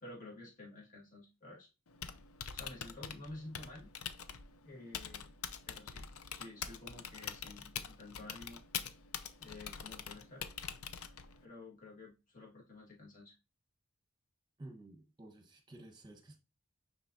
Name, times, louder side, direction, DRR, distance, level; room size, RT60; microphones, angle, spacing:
voice 1, 0.0-1.7 2.5-3.9 4.6-5.3 5.7-8.6 9.4-10.5 11.4-13.3, left 2 dB, 35° left, 1.7 m, -51 dB
Typing, 1.9-11.4, left 7 dB, 90° left, 0.6 m, -45 dB
voice 2, 14.6-16.4, right 2 dB, 20° right, 1.1 m, -52 dB
8.8 x 4.2 x 2.7 m
head